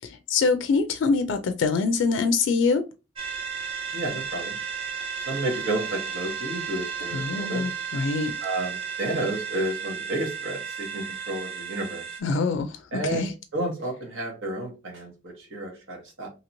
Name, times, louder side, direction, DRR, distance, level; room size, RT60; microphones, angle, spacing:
voice 1, 0.0-2.8 7.1-8.3 12.2-13.3, left 4 dB, 75° left, 0.3 m, -24 dB
sound 1, 3.2-12.2, right 6 dB, 30° right, 0.5 m, -34 dB
voice 2, 3.9-4.6 5.3-7.7 8.4-12.0 12.9-13.3 13.5-16.3, right 1 dB, 80° right, 1.2 m, -31 dB
2.9 x 2.8 x 2.6 m
head